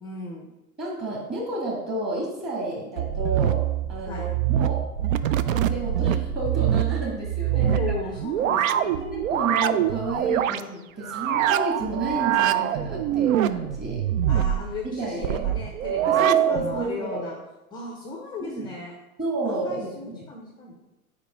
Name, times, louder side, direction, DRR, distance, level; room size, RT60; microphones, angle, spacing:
voice 1, 0.0-0.5 4.0-4.3 7.5-9.0 14.3-17.4 17.7-18.9 19.5-20.9, left 4 dB, 10° left, 2 dB, 0.5 m, -36 dB
voice 2, 0.8-3.6 3.9-4.8 5.4-7.8 8.4-14.1 14.8-15.4 16.0-17.3 18.5-18.7 19.2-20.3, right 2 dB, 20° right, -4 dB, 1.9 m, -31 dB
sound 1, 3.0-10.6 11.0-16.8, right 11 dB, 60° right, 0.5 m, -24 dB
5.2 x 4.8 x 5.0 m, 0.97 s
hypercardioid pair, 110°, 45 cm